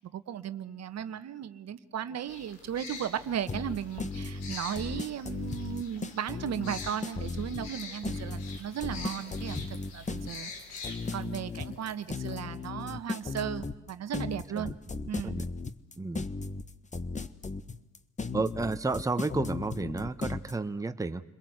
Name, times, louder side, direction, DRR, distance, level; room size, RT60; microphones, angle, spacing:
voice 1, 0.0-10.5 11.1-14.7 15.1-15.4, right 9 dB, 50° right, 11 dB, 1.4 m, -36 dB
sound 1, 2.3-11.2, left 4 dB, 85° left, 4.5 m, -45 dB
sound 2, 3.5-20.5, left 3 dB, 20° left, 1.4 m, -36 dB
sound 3, 7.6-13.3, left 3 dB, 65° left, 5.6 m, -56 dB
voice 2, 14.3-14.8 15.2-15.4 16.0-16.3 18.3-21.2, right 3 dB, 10° right, 9 dB, 1.2 m, -32 dB
29.5 x 22.0 x 8.1 m, 0.96 s
hypercardioid pair, 65°, 34 cm